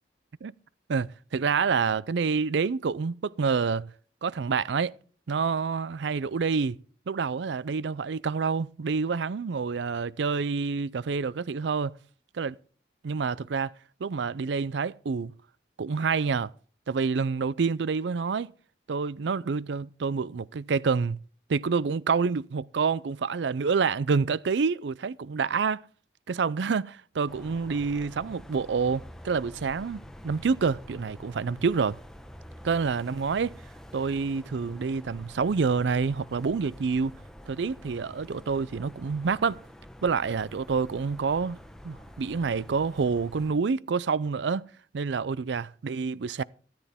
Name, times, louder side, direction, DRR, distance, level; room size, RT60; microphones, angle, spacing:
voice 1, 0.9-3.9 4.2-4.9 5.3-6.8 7.1-11.9 12.3-12.6 13.0-13.7 14.0-15.3 15.8-16.5 16.9-18.5 18.9-21.2 21.5-25.8 26.3-32.0 32.6-33.5 33.9-37.2 37.5-39.6 40.0-41.6 41.8-44.7 44.9-46.4, right 5 dB, 75° right, 0.5 m, -27 dB
sound 1, 27.3-43.5, equal, 5° left, 0.9 m, -47 dB
14.0 x 13.5 x 3.6 m
head